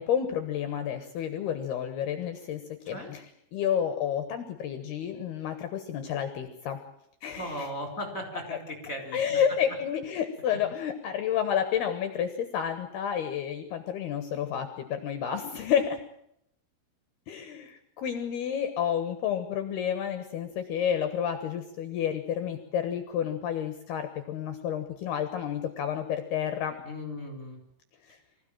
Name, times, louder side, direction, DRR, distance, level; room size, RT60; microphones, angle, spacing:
voice 1, 0.0-2.6 2.9-3.2 3.5-6.8 7.2-7.7 8.5-8.6 9.1-16.0 17.3-26.8, left 9 dB, 65° left, 8 dB, 2.9 m, -30 dB
voice 2, 7.3-9.4 10.5-10.6 26.8-27.6, left 1 dB, 15° left, 4 dB, 5.0 m, -37 dB
24.5 x 16.0 x 8.9 m, 0.75 s
omnidirectional pair, 5.7 m